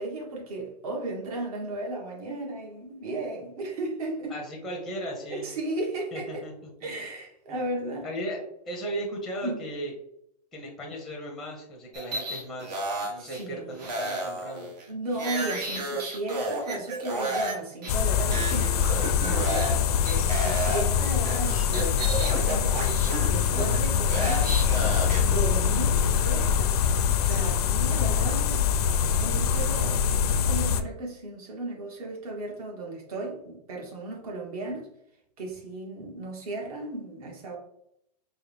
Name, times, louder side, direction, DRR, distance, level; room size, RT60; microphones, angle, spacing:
voice 1, 0.0-4.4 5.3-6.4 6.8-8.1 9.4-9.6 13.1-13.8 14.9-18.9 19.2-23.0 23.3-24.5 25.2-26.7 27.2-28.7 29.2-34.9 35.4-37.6, right 2 dB, 60° right, 0 dB, 1.2 m, -35 dB
voice 2, 4.3-5.5 6.1-6.5 8.0-8.4 8.7-9.9 10.5-14.7, right 1 dB, ahead, -1 dB, 0.5 m, -36 dB
sound 1, 11.9-13.4 13.8-17.5 17.8-17.9 18.3-19.8 20.0-25.2, right 2 dB, 80° right, 1.1 m, -32 dB
sound 2, 17.9-30.8, left 7 dB, 65° left, 0.4 m, -24 dB
4.5 x 2.2 x 3.2 m, 0.76 s
supercardioid pair, 155°, 21 cm